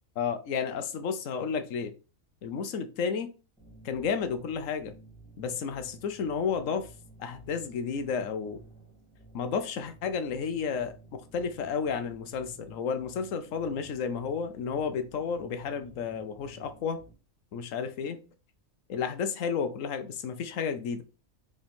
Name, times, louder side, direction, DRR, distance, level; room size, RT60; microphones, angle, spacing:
voice 1, 0.2-1.9 2.4-3.3 3.8-4.9 5.4-6.9 7.2-8.6 9.3-17.0 17.5-18.2 18.9-21.0, left 6 dB, 75° left, 1.2 m, -32 dB
sound 1, 3.6-17.1, right 3 dB, 5° left, 2.1 m, -54 dB
5.3 x 3.7 x 5.2 m
omnidirectional pair, 1.4 m